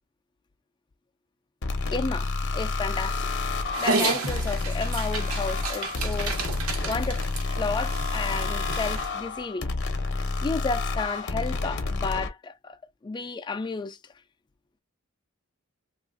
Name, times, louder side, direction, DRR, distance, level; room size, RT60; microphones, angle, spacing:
sound 1, 1.6-12.3, left 3 dB, 55° left, 0.6 m, -29 dB
voice 1, 1.9-3.3 3.8-6.4 6.8-7.2 7.6-9.7 10.4-12.8 13.0-14.0, left 4 dB, 20° left, 0.3 m, -32 dB
Dog, 3.7-9.1, right 3 dB, 85° right, 1.1 m, -31 dB
3.1 x 2.4 x 2.5 m
head